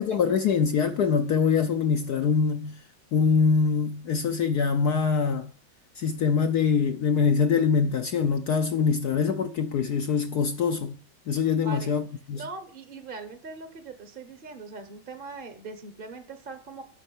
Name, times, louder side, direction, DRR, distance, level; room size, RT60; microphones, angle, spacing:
voice 1, 0.0-2.8 3.1-5.5 6.0-11.0 11.3-12.0 12.3-12.4, left 6 dB, 65° left, 1.0 m, -24 dB
voice 2, 12.4-16.8, right 3 dB, 35° right, 0.9 m, -40 dB
9.9 x 6.3 x 7.8 m
omnidirectional pair, 2.2 m